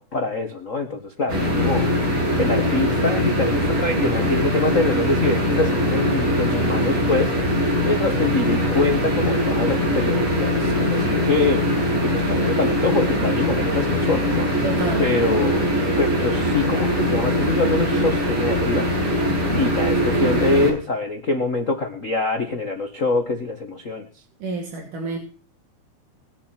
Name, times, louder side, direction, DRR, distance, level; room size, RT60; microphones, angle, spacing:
voice 1, 0.0-7.3 7.8-14.5 15.0-18.9 19.5-24.1, left 3 dB, 40° left, 5 dB, 1.1 m, -24 dB
sound 1, 1.3-20.7, equal, 50° right, 9.2 m, -21 dB
voice 2, 14.6-15.0 24.4-25.2, right 3 dB, 75° right, 0 dB, 4.2 m, -28 dB
20.5 x 7.6 x 7.4 m, 0.40 s
omnidirectional pair, 3.6 m